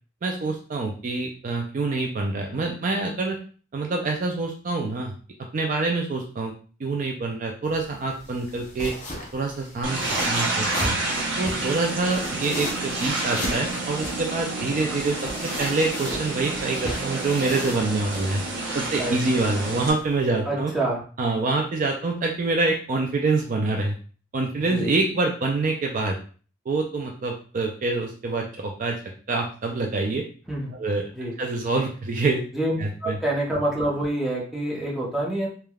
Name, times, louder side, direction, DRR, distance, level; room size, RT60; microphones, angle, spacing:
voice 1, 0.2-3.4 3.7-5.1 5.5-6.5 6.8-8.9 9.3-11.0 11.4-18.4 18.7-20.7 21.2-24.0 24.3-26.2 26.7-29.0 29.3-30.2 30.7-31.1 31.4-32.4 32.8-33.2, right 3 dB, 45° right, 1 dB, 0.3 m, -26 dB
sound 1, 7.6-20.3, left 1 dB, 40° left, 0.6 m, -36 dB
sound 2, 9.8-19.9, right 2 dB, 90° right, 0.9 m, -29 dB
voice 2, 20.5-21.0 24.7-24.9 30.5-30.7 31.1-31.3 32.5-32.7 33.0-35.5, right 1 dB, ahead, -5 dB, 0.7 m, -26 dB
3.3 x 2.2 x 2.2 m, 0.40 s
head